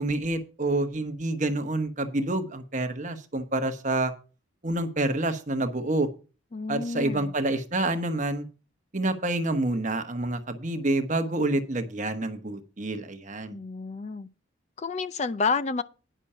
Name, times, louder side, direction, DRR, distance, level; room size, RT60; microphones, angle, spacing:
voice 1, 0.0-4.1 4.6-6.1 6.7-8.5 8.9-13.6, right 2 dB, 40° right, 1.1 m, -28 dB
voice 2, 6.5-7.3 13.5-14.3 14.8-15.8, left 4 dB, 35° left, 0.4 m, -29 dB
10.0 x 6.1 x 5.6 m
head